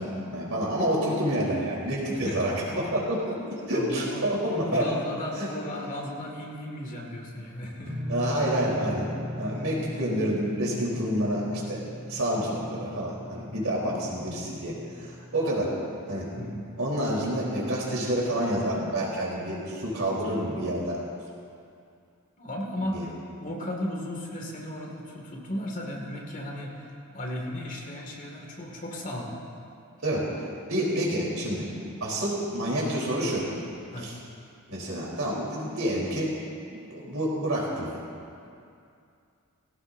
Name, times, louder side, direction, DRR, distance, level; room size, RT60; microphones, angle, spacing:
voice 1, 0.0-4.9 5.4-5.5 8.1-9.1 9.3-11.8 12.1-15.7 16.1-16.3 16.8-21.0 22.9-23.0 30.0-30.3 30.7-31.6 32.0-33.5 34.0-34.1 34.7-36.3 36.7-37.9, right 1 dB, 70° right, -5 dB, 3.9 m, -28 dB
voice 2, 2.1-2.8 3.7-4.3 4.7-8.0 13.7-13.9 16.3-16.6 22.4-23.1 23.4-29.4 33.9-34.1, left 1 dB, 40° left, -1 dB, 2.2 m, -35 dB
sound 1, 7.8-15.4, left 1 dB, 40° right, 2.1 m, -38 dB
19.0 x 17.0 x 2.7 m, 2.5 s
head